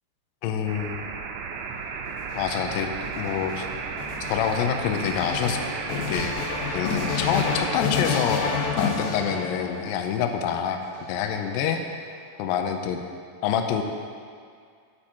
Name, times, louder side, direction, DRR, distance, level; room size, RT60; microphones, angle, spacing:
voice 1, 0.4-1.0 2.4-3.7 4.3-5.6 5.9-6.3 6.7-10.8 11.1-11.8 12.4-13.0 13.4-13.8, left 8 dB, 90° left, 5 dB, 2.3 m, -26 dB
sound 1, 0.7-7.8, right 5 dB, 80° right, 2.7 m, -34 dB
sound 2, 2.1-10.0 10.8-11.7, left 5 dB, 70° left, 2.1 m, -29 dB
9.6 x 8.7 x 4.4 m, 2.2 s
omnidirectional pair, 5.6 m